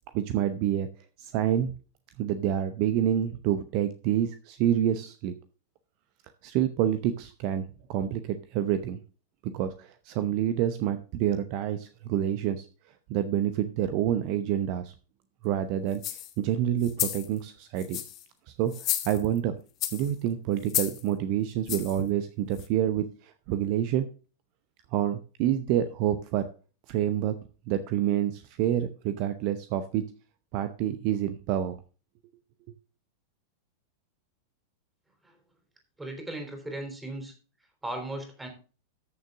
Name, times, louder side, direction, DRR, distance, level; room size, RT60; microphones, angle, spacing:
voice 1, 0.1-0.9 1.2-1.7 2.2-5.3 6.4-9.0 9.4-12.7 13.1-14.9 15.4-18.0 18.5-19.5 19.9-24.1 24.9-26.5 26.9-27.4 27.7-30.1 30.5-31.8, right 10 dB, 45° right, 11 dB, 0.8 m, -28 dB
sound 1, 15.9-16.3 16.8-17.3 17.8-18.2 18.7-19.4 19.8-20.1 20.7-21.0 21.7-22.0 22.6-22.7, left 13 dB, 35° left, 1.3 m, -31 dB
voice 2, 36.0-37.3 37.8-38.5, right 1 dB, 10° right, 5 dB, 3.5 m, -37 dB
14.0 x 6.6 x 3.7 m, 0.35 s
figure-of-eight pair, 90°, 0 cm